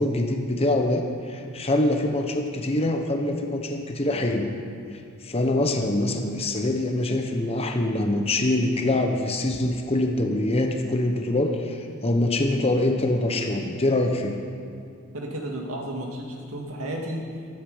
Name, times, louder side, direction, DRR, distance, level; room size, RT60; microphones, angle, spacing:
voice 1, 0.0-4.5 4.9-14.4, left 1 dB, 30° left, 4 dB, 0.9 m, -24 dB
voice 2, 15.1-17.2, right 1 dB, 80° right, 0 dB, 2.3 m, -32 dB
13.5 x 13.0 x 5.1 m, 2.4 s
head